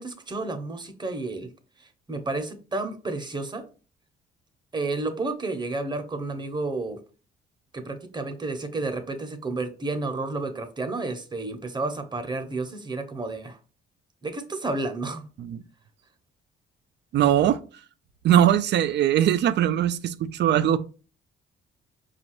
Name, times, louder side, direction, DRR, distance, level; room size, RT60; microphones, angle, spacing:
voice 1, 0.0-1.5 1.8-3.6 4.7-7.0 7.7-13.6 14.2-15.3, right 3 dB, 20° right, 0.8 m, -31 dB
voice 2, 17.1-17.6 18.2-20.8, right 10 dB, 60° right, 0.4 m, -21 dB
5.1 x 2.4 x 3.0 m
cardioid pair, 90°, 20 cm